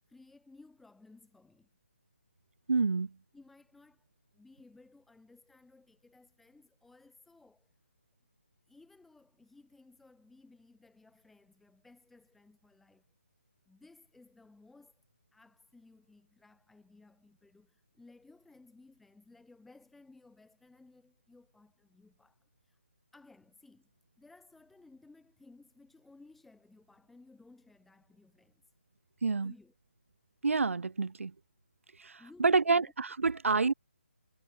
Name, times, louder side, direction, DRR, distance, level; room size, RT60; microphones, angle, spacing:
voice 1, 0.1-1.7 3.3-4.1 4.3-7.7 8.7-13.1 13.7-15.0 15.3-22.8 23.1-23.9 24.2-28.7 29.4-29.7 32.2-32.9, left 3 dB, ahead, 3.3 m, -59 dB
voice 2, 2.7-3.1 29.2-29.5 30.4-31.3 32.0-33.7, right 4 dB, 80° right, 0.9 m, -28 dB
hypercardioid pair, 170°, 7 cm